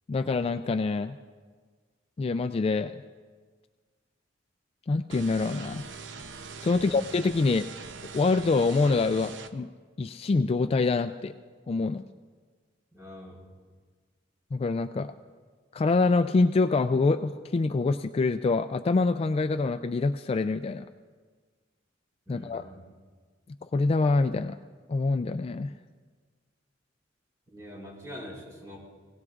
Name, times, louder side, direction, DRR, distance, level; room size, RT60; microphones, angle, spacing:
voice 1, 0.1-1.2 2.2-2.9 4.9-5.8 6.6-7.7 8.1-9.7 10.0-11.3 11.7-12.0 14.5-15.1 15.7-20.9 22.3-22.6 23.6-24.6 24.9-25.7, left 3 dB, 30° left, 9 dB, 0.3 m, -25 dB
sound 1, 5.1-9.5, right 4 dB, 75° right, 0.7 m, -42 dB
voice 2, 12.9-13.4 22.3-22.8 27.5-28.8, equal, 20° right, -4 dB, 4.6 m, -44 dB
24.5 x 18.0 x 2.4 m, 1.5 s
head